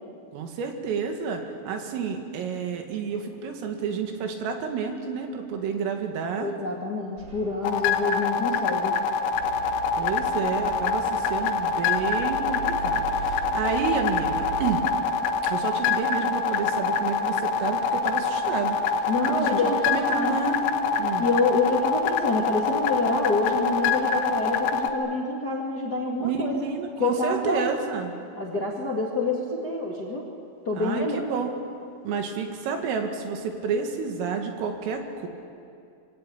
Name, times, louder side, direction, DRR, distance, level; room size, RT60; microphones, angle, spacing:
voice 1, 0.3-6.5 9.9-14.8 15.5-20.7 21.0-21.3 26.2-28.1 30.8-31.5 32.0-35.3, right 6 dB, 90° right, 4 dB, 4.8 m, -30 dB
voice 2, 6.4-8.9 19.1-20.4 21.2-26.7 27.0-27.7 28.3-30.3 30.6-31.2, left 2 dB, 35° left, -2 dB, 1.6 m, -27 dB
sound 1, 7.2-7.9 9.3-14.8, right 7 dB, 55° right, 2.3 m, -39 dB
sound 2, 7.6-24.9, left 5 dB, 75° left, 3.5 m, -25 dB
25.5 x 23.0 x 8.9 m, 2.5 s
omnidirectional pair, 5.7 m